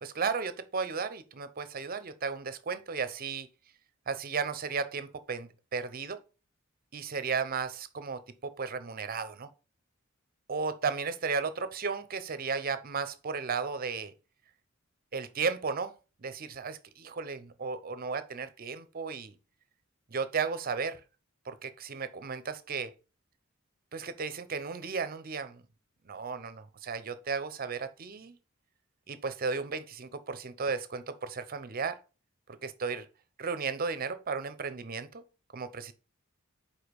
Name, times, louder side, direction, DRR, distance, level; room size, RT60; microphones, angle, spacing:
voice 1, 0.0-3.5 4.1-6.2 6.9-9.5 10.5-14.1 15.1-19.3 20.1-21.0 21.5-22.9 23.9-25.6 26.1-28.4 29.1-32.0 32.6-33.1 33.4-35.2 35.5-35.9, right 5 dB, 45° right, 0.7 m, -34 dB
4.9 x 4.4 x 5.2 m
head